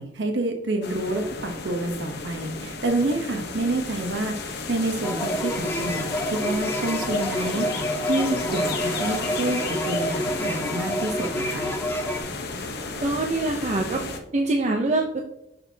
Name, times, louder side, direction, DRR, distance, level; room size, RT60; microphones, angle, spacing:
voice 1, 0.0-11.7, right 2 dB, 70° right, 4 dB, 0.9 m, -28 dB
sound 1, 0.8-14.2, left 3 dB, 60° left, 0.8 m, -33 dB
sound 2, 5.0-12.2, equal, 10° left, 0.4 m, -29 dB
voice 2, 13.0-14.0 14.3-15.2, right 2 dB, 40° right, 2 dB, 0.6 m, -24 dB
6.6 x 6.2 x 2.7 m, 0.82 s
head